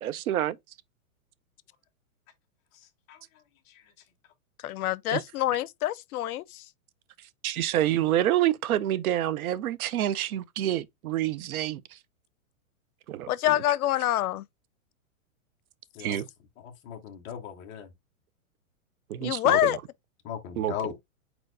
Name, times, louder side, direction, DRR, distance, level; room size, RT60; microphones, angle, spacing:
voice 1, 0.0-0.6 5.1-5.2 7.4-11.8 13.1-13.3 16.0-16.3 19.1-19.8 20.6-20.7, right 12 dB, 80° right, 0.7 m, -27 dB
voice 2, 4.6-6.6 13.3-14.4 19.2-19.8, left 14 dB, 90° left, 0.6 m, -26 dB
voice 3, 16.6-17.9 20.2-21.0, left 9 dB, 15° left, 0.5 m, -37 dB
4.5 x 4.3 x 2.5 m
hypercardioid pair, 155°, 43 cm